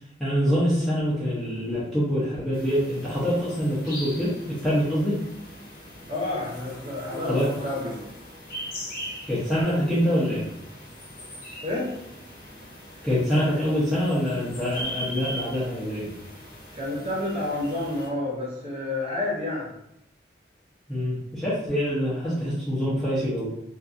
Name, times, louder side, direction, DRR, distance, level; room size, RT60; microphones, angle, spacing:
voice 1, 0.2-5.2 7.3-7.5 9.3-10.5 13.0-16.1 20.9-23.5, equal, ahead, -11 dB, 0.6 m, -25 dB
sound 1, 2.5-18.1, equal, 50° left, 0.7 m, -40 dB
voice 2, 6.1-8.0 11.6-11.9 16.7-19.7, left 2 dB, 30° right, -6 dB, 0.8 m, -29 dB
2.6 x 2.4 x 2.4 m, 0.81 s
head